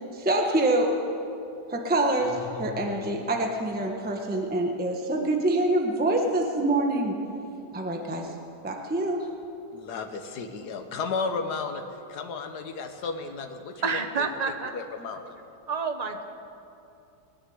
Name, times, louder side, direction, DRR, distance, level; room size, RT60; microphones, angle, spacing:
voice 1, 0.1-0.9 1.7-7.2 7.7-8.3 8.6-9.3, right 2 dB, 5° right, 2 dB, 0.9 m, -26 dB
sound 1, 2.1-3.6, left 6 dB, 35° left, 2.6 m, -42 dB
voice 2, 9.7-11.8 12.1-14.0 14.5-15.3, left 4 dB, 70° left, 6 dB, 1.6 m, -33 dB
voice 3, 13.8-14.7 15.7-16.2, right 5 dB, 30° right, 6 dB, 0.8 m, -28 dB
20.5 x 6.8 x 9.4 m, 2.8 s
omnidirectional pair, 1.8 m